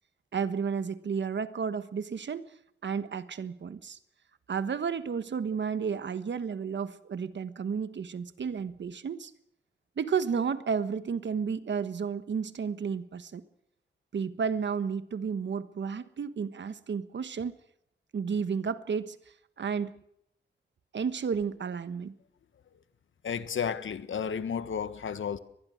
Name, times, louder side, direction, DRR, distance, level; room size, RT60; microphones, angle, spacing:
voice 1, 0.3-2.4 2.8-4.0 4.5-9.3 10.0-13.4 14.1-17.5 18.1-19.2 19.6-19.9 20.9-22.1, right 6 dB, 65° right, 1.3 m, -32 dB
voice 2, 23.2-25.4, left 7 dB, 90° left, 1.4 m, -32 dB
23.5 x 20.5 x 6.5 m
wide cardioid pair, 170°, 20 cm